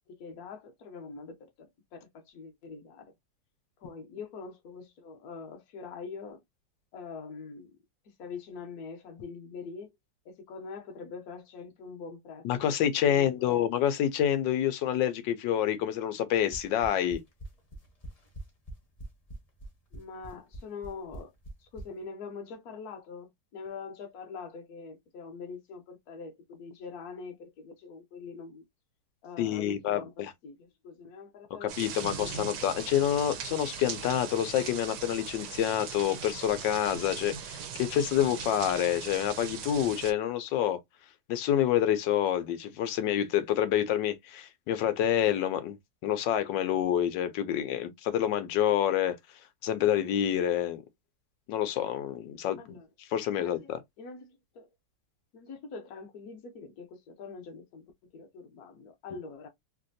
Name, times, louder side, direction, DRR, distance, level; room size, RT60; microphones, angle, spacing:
voice 1, 0.1-3.1 3.8-6.4 6.9-7.7 8.0-9.9 10.2-12.8 13.0-13.6 19.9-21.3 21.6-28.6 29.2-32.3 52.6-52.9 53.3-53.7 54.0-54.7 55.3-59.5, left 5 dB, 60° left, 1.2 m, -44 dB
voice 2, 12.4-17.2 29.4-30.3 31.6-40.8 41.3-45.8 46.0-49.2 49.6-50.8 51.5-52.8 53.1-53.8, left 10 dB, 80° left, 1.3 m, -28 dB
sound 1, 16.3-21.9, right 1 dB, 30° left, 0.7 m, -43 dB
sound 2, 31.7-40.1, right 7 dB, 70° right, 1.2 m, -40 dB
3.3 x 2.5 x 2.6 m
omnidirectional pair, 2.0 m